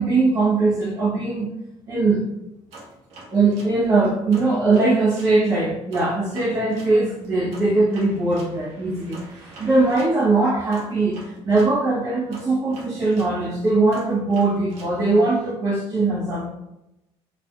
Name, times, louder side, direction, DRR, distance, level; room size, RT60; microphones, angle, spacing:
voice 1, 0.0-1.5 1.9-2.2 3.3-16.5, right 3 dB, 35° right, -8 dB, 0.8 m, -21 dB
sound 1, 2.7-5.4 5.9-11.8 12.3-15.5, right 2 dB, 90° right, 1.2 m, -44 dB
4.3 x 2.4 x 2.3 m, 0.89 s
cardioid pair, 175°, 11 cm